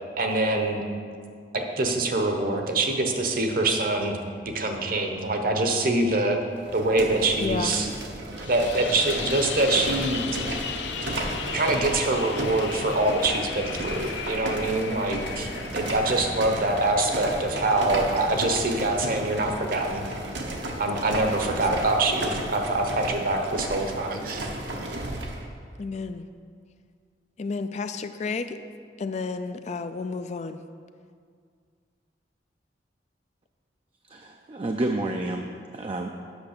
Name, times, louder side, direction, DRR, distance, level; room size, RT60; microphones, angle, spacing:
voice 1, 0.2-0.8 1.5-4.2 4.5-6.4 6.7-7.9 8.5-10.4 11.5-20.0 20.8-24.5, right 2 dB, 50° right, 3 dB, 1.0 m, -25 dB
sound 1, 4.5-6.8 8.3-20.0 21.5-22.0, left 6 dB, 80° left, 0.6 m, -38 dB
sound 2, 6.6-25.4, right 1 dB, 80° right, 1.1 m, -34 dB
voice 2, 7.4-7.7 25.8-26.2 27.4-28.6 29.0-30.6, left 4 dB, 40° left, 10 dB, 0.3 m, -31 dB
voice 3, 34.1-36.1, right 2 dB, 30° right, 3 dB, 0.4 m, -30 dB
8.2 x 6.2 x 6.6 m, 2.1 s
head